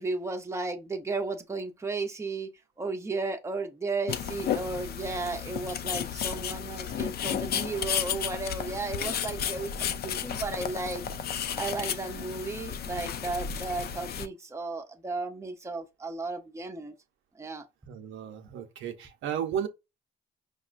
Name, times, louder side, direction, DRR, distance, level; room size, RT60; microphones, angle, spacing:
voice 1, 0.0-2.5 2.8-11.0 11.6-16.9 17.4-17.6, right 3 dB, 15° right, 0.6 m, -34 dB
sound 1, 4.1-14.3, left 9 dB, 55° left, 0.4 m, -33 dB
voice 2, 17.9-19.7, right 9 dB, 80° right, 0.7 m, -34 dB
5.3 x 2.2 x 2.4 m
cardioid pair, 90°, 20 cm